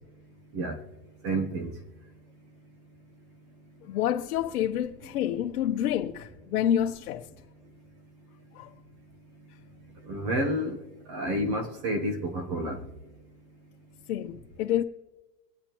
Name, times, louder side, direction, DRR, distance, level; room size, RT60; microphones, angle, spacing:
voice 1, 1.2-1.7 10.0-10.8 11.1-12.8, right 1 dB, 25° right, 0.9 m, -29 dB
voice 2, 3.8-7.3 8.5-8.7 14.1-14.8, left 10 dB, 70° left, 0.9 m, -28 dB
24.5 x 8.5 x 3.0 m
supercardioid pair, 180°, 45 cm